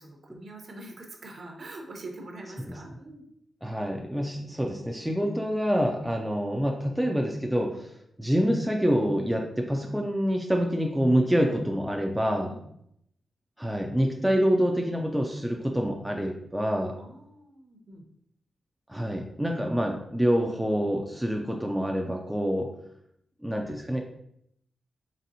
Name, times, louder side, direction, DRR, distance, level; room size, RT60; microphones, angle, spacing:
voice 1, 0.0-3.2 6.0-6.1 12.4-12.7 17.0-18.0, right 2 dB, 45° right, 2 dB, 0.7 m, -44 dB
voice 2, 3.6-7.9 8.2-12.5 13.6-16.9 18.9-22.7 23.4-24.0, equal, 5° right, 1 dB, 0.3 m, -26 dB
4.1 x 3.4 x 2.6 m, 0.73 s
wide cardioid pair, 150°, 0 cm